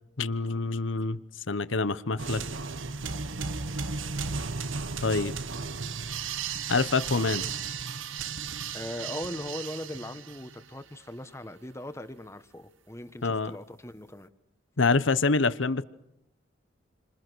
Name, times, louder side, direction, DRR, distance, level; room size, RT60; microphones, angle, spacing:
voice 1, 0.2-1.2 1.5-2.4 5.0-5.3 6.7-7.5 13.2-13.5 14.8-15.8, left 3 dB, 80° left, 15 dB, 1.0 m, -26 dB
sound 1, 2.2-10.7, right 5 dB, 90° right, 1.3 m, -35 dB
voice 2, 8.7-14.3, left 1 dB, 15° left, 11 dB, 1.2 m, -39 dB
30.0 x 26.0 x 6.3 m, 0.80 s
head